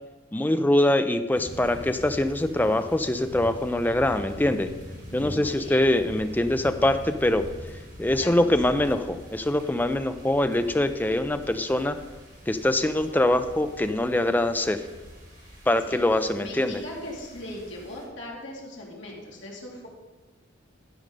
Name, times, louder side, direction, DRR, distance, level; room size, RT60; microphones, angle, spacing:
voice 1, 0.3-4.7 5.1-7.5 8.0-12.0 12.5-14.8 15.7-16.8, left 1 dB, 10° left, 9 dB, 0.4 m, -23 dB
sound 1, 1.3-18.0, equal, 55° right, 3.6 m, -44 dB
voice 2, 5.1-5.9 8.2-8.4 15.3-15.6 15.9-16.0 16.4-19.9, left 1 dB, 60° left, -3 dB, 2.5 m, -39 dB
12.5 x 5.3 x 5.3 m, 1.2 s
head